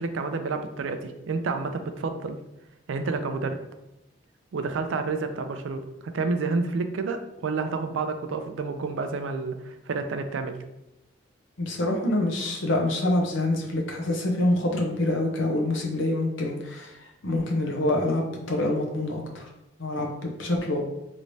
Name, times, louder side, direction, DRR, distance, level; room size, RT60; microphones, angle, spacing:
voice 1, 0.0-2.4 2.9-3.6 4.5-10.6, right 4 dB, 90° right, 8 dB, 0.4 m, -29 dB
voice 2, 11.6-19.4 19.8-20.8, left 1 dB, 85° left, 1 dB, 0.7 m, -26 dB
3.1 x 3.1 x 2.6 m, 0.85 s
head